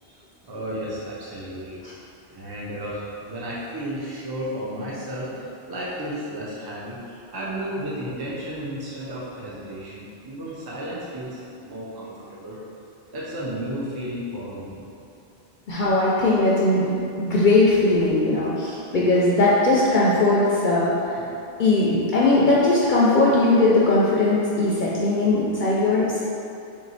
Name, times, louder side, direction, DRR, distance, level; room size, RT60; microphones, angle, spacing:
voice 1, 0.0-1.8 2.3-12.6 13.1-14.8, equal, 25° right, -7 dB, 0.6 m, -33 dB
voice 2, 15.7-21.3 21.6-26.2, left 2 dB, 55° left, -6 dB, 0.6 m, -19 dB
3.6 x 3.1 x 4.0 m, 2.6 s
omnidirectional pair, 1.1 m